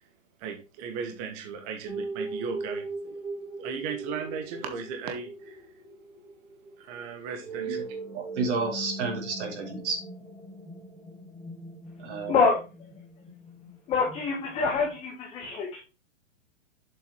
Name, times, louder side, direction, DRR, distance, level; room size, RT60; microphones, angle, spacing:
voice 1, 0.4-3.2 3.6-5.6 6.8-7.8, right 6 dB, 30° right, 5 dB, 1.3 m, -36 dB
sound 1, 1.8-15.0, right 2 dB, ahead, 0.4 m, -40 dB
voice 2, 8.1-10.0 12.0-12.4, right 4 dB, 60° right, 0 dB, 3.6 m, -31 dB
voice 3, 13.9-15.8, left 4 dB, 15° left, -1 dB, 1.3 m, -25 dB
7.5 x 5.4 x 3.2 m, 0.31 s
hypercardioid pair, 150°, 39 cm